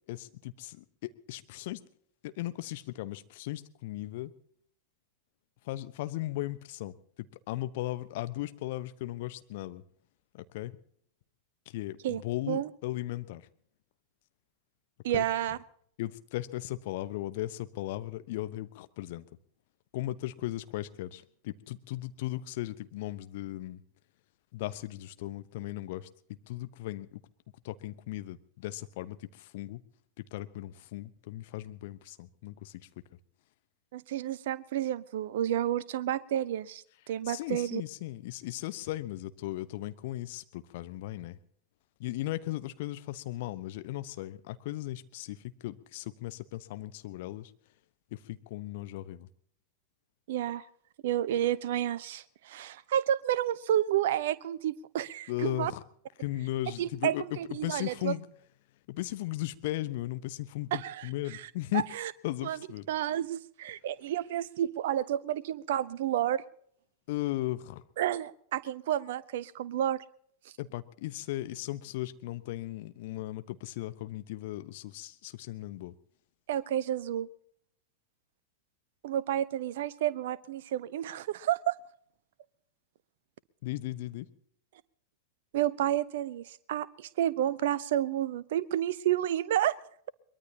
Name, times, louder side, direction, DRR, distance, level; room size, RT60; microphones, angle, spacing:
voice 1, 0.1-1.8 2.2-4.3 5.6-9.8 10.3-10.7 11.7-13.5 15.1-15.2 16.0-19.3 19.9-23.8 24.5-26.1 26.5-27.1 27.6-29.8 30.3-32.8 37.3-41.4 42.0-47.5 48.1-49.3 55.3-55.8 56.2-58.3 58.9-61.8 62.2-62.9 67.1-67.8 70.6-75.9 83.6-84.3, left 16 dB, 50° left, 12 dB, 1.0 m, -37 dB
voice 2, 15.0-15.6 33.9-37.8 50.3-50.6 51.0-55.7 56.8-58.1 60.7-61.5 61.7-62.1 62.4-62.6 62.9-66.4 68.0-70.0 76.5-77.3 79.0-81.7 85.5-89.8, right 11 dB, 55° right, 19 dB, 0.8 m, -30 dB
23.0 x 21.5 x 2.9 m, 0.65 s
figure-of-eight pair, 90°, 0 cm